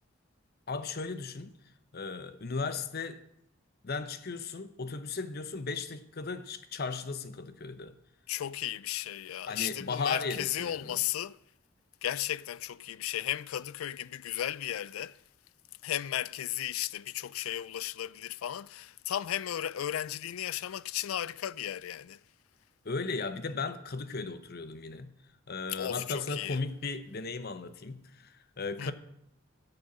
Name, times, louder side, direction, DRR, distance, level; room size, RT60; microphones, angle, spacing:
voice 1, 0.7-1.5 1.9-3.2 3.8-8.0 9.5-11.0 22.8-25.1 25.5-28.9, left 4 dB, 50° left, 0.8 m, -36 dB
voice 2, 8.3-11.4 12.0-15.2 15.8-22.2 25.7-26.6 28.8-28.9, left 12 dB, 80° left, 0.4 m, -35 dB
10.0 x 6.8 x 8.5 m
head